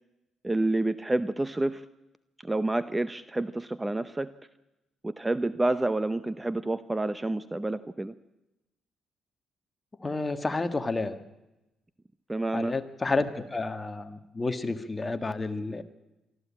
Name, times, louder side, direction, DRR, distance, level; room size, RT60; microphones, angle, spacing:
voice 1, 0.4-1.9 2.4-4.3 5.0-8.1 12.3-12.7, right 2 dB, 15° right, 14 dB, 0.6 m, -28 dB
voice 2, 10.0-11.2 12.5-15.8, left 3 dB, 20° left, 9 dB, 1.6 m, -30 dB
24.5 x 13.5 x 8.5 m, 0.96 s
cardioid pair, 90°, 0 cm